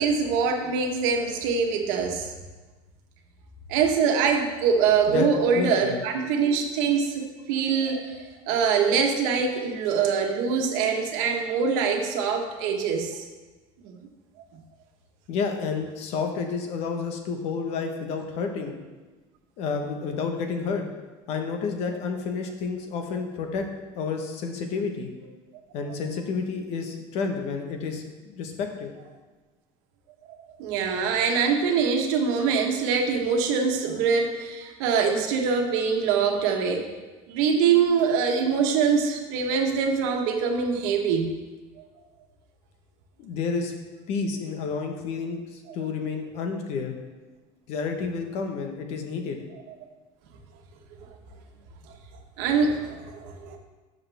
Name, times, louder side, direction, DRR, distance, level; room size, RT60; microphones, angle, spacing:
voice 1, 0.0-2.3 3.7-13.2 13.8-14.0 14.5-14.6 30.6-36.9 37.3-41.3 52.4-53.6, right 6 dB, 70° right, 3 dB, 1.4 m, -24 dB
voice 2, 5.6-6.0 15.3-18.7 19.6-20.8 21.3-23.7 23.9-25.1 25.7-28.9 43.2-43.7 44.1-46.9 47.7-49.4, left 5 dB, 55° left, 4 dB, 1.2 m, -30 dB
12.5 x 6.6 x 3.5 m, 1.3 s
cardioid pair, 170°, 13 cm